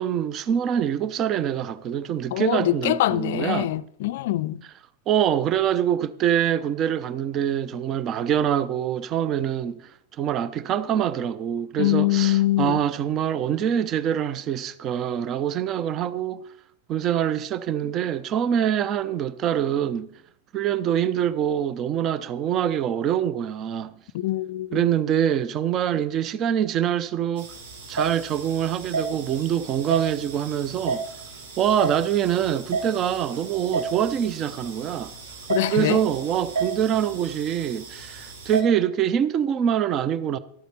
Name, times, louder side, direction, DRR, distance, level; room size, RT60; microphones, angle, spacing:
voice 1, 0.0-3.7 5.1-9.8 10.2-16.4 16.9-20.1 20.5-23.9 24.7-27.5 27.9-31.0 31.6-35.1 35.7-40.4, right 9 dB, 30° right, 0.6 m, -24 dB
voice 2, 2.3-4.6 11.8-12.8 24.1-24.9 35.5-36.0, left 15 dB, 55° left, 0.4 m, -23 dB
sound 1, 27.4-38.6, right 4 dB, 60° right, 2.3 m, -33 dB
12.5 x 8.2 x 4.3 m
figure-of-eight pair, 90°, 0 cm